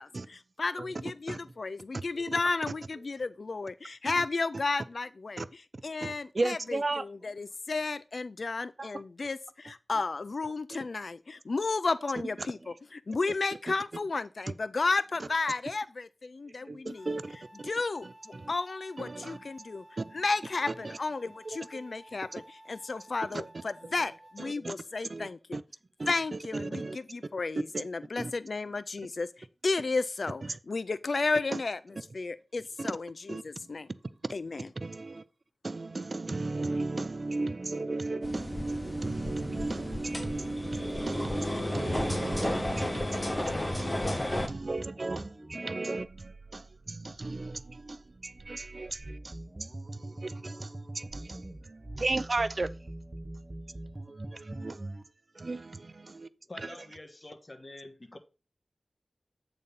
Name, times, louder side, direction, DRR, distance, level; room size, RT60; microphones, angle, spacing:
voice 1, 0.0-17.1 17.6-19.8 20.1-25.6 26.1-33.9 34.3-34.7, left 3 dB, 70° left, 0.3 m, -33 dB
voice 2, 6.0-7.0 8.8-8.9 10.7-10.8 12.4-12.5 16.7-17.7 18.3-18.5 19.0-19.4 20.0-20.2 20.7-21.0 21.5-21.8 23.3-23.5 24.4-24.7 25.1-25.6 26.0-27.0 27.7-27.9 28.2-28.3 31.5-31.6 32.8-32.9 33.3-33.4 34.8-35.2 35.6-49.3 49.9-51.4 52.0-52.7 54.3-54.8 55.4-56.3 56.6-56.7, right 2 dB, 55° right, 0.5 m, -35 dB
sound 1, 16.9-24.5, right 1 dB, 10° left, 3.5 m, -54 dB
sound 2, 38.2-44.5, left 1 dB, 25° left, 1.3 m, -33 dB
sound 3, 43.8-55.0, right 2 dB, 35° right, 1.1 m, -43 dB
voice 3, 56.5-58.2, left 2 dB, 40° left, 1.4 m, -47 dB
8.6 x 4.1 x 5.4 m
wide cardioid pair, 55°, 0 cm